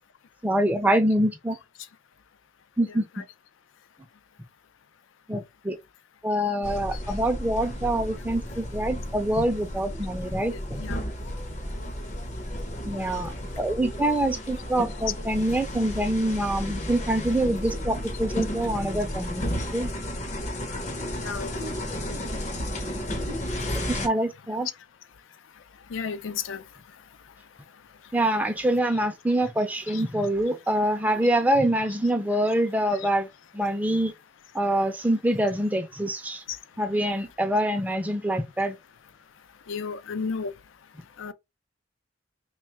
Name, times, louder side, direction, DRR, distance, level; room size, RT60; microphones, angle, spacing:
voice 1, 0.4-1.6 2.8-3.2 5.3-5.8 6.2-10.8 12.8-19.4 19.7-19.9 23.9-24.7 28.1-33.3 33.5-34.1 34.5-36.4 36.8-38.8, right 1 dB, 10° right, 0.4 m, -25 dB
voice 2, 2.9-3.2 10.5-11.0 12.9-13.1 21.2-21.5 25.9-26.6 29.9-30.0 33.0-33.1 36.5-36.6 39.7-40.5 41.2-41.3, left 5 dB, 80° left, 0.4 m, -33 dB
sound 1, 6.6-24.1, left 1 dB, 35° left, 0.6 m, -33 dB
3.1 x 2.3 x 4.2 m
head